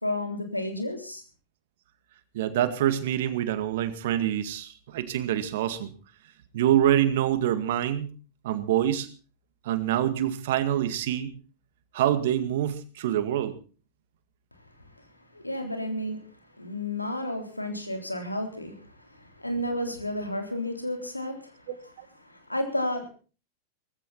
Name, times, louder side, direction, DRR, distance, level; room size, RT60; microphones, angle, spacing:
voice 1, 0.0-1.2 15.3-16.2 16.6-21.5 22.2-23.1, left 1 dB, 85° left, 3.7 m, -32 dB
voice 2, 2.3-5.9 6.5-8.1 8.4-9.1 9.6-11.3 11.9-13.6 21.7-22.1, right 11 dB, 55° right, 1.9 m, -26 dB
19.0 x 15.5 x 4.3 m
figure-of-eight pair, 90°, 0 cm